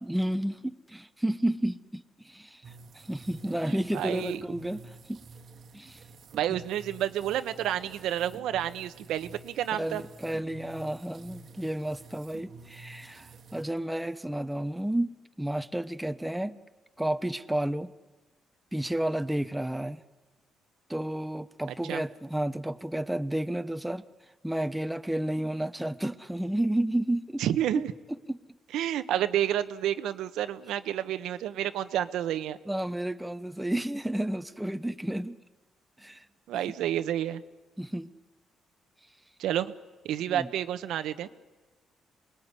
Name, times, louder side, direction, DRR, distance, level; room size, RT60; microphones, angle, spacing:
voice 1, 0.0-5.2 5.7-6.0 6.5-6.6 9.7-16.6 17.0-17.9 18.7-20.0 20.9-24.1 24.4-27.4 28.3-28.4 32.6-35.4 36.0-36.3 36.6-36.7 37.8-38.1 40.3-40.5, right 1 dB, 5° right, 11 dB, 0.9 m, -31 dB
sound 1, 2.6-13.7, right 4 dB, 55° right, 1.5 m, -50 dB
voice 2, 3.9-4.4 6.3-10.0 21.9-22.0 27.4-27.9 28.7-32.6 36.5-37.4 39.4-39.7 40.0-41.3, right 11 dB, 85° right, 10 dB, 1.1 m, -30 dB
27.0 x 21.0 x 9.9 m, 1.2 s
cardioid pair, 90°, 0 cm